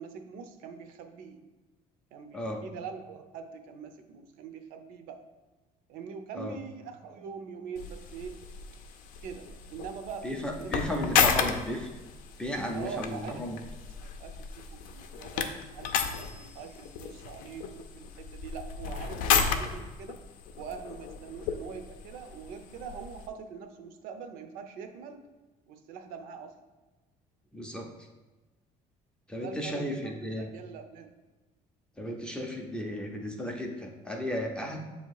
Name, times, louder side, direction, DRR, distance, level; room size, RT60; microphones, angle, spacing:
voice 1, 0.0-1.4 2.1-5.2 5.9-8.4 9.2-10.8 11.3-11.4 12.7-13.4 14.0-15.4 15.7-20.2 20.5-25.2 25.7-26.5 29.3-31.1, right 6 dB, 75° right, 7 dB, 0.6 m, -43 dB
voice 2, 2.3-2.6 6.3-6.6 10.2-11.9 12.4-13.6 27.5-27.9 29.3-30.5 32.0-34.8, left 1 dB, 5° left, 1 dB, 0.5 m, -34 dB
sound 1, 7.8-23.3, left 7 dB, 70° left, 0.5 m, -33 dB
7.3 x 2.8 x 4.6 m, 1.2 s
cardioid pair, 180°, 15 cm